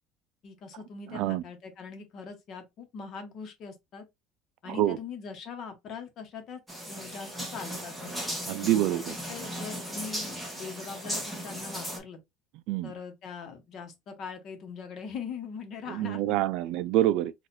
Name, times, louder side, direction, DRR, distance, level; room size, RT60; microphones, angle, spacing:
voice 1, 0.4-4.0 4.6-8.4 9.1-12.2 12.8-16.4, left 5 dB, 40° left, 1.0 m, -42 dB
voice 2, 1.1-1.4 4.7-5.0 8.5-9.1 12.7-12.9 15.9-17.3, right 14 dB, 65° right, 0.3 m, -26 dB
sound 1, 6.7-12.0, equal, 5° right, 1.1 m, -37 dB
4.2 x 2.4 x 2.5 m
cardioid pair, 160°, 0 cm